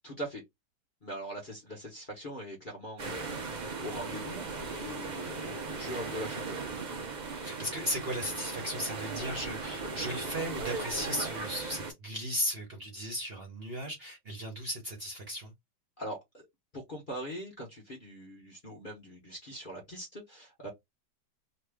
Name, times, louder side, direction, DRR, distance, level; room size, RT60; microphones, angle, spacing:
voice 1, 0.0-0.4 1.0-6.6 16.0-16.5 16.7-20.7, equal, 35° left, 0.9 m, -42 dB
sound 1, 3.0-11.9, right 4 dB, 75° right, 0.4 m, -38 dB
voice 2, 7.4-15.5, equal, 45° right, 0.9 m, -36 dB
3.0 x 2.3 x 3.4 m
omnidirectional pair, 1.8 m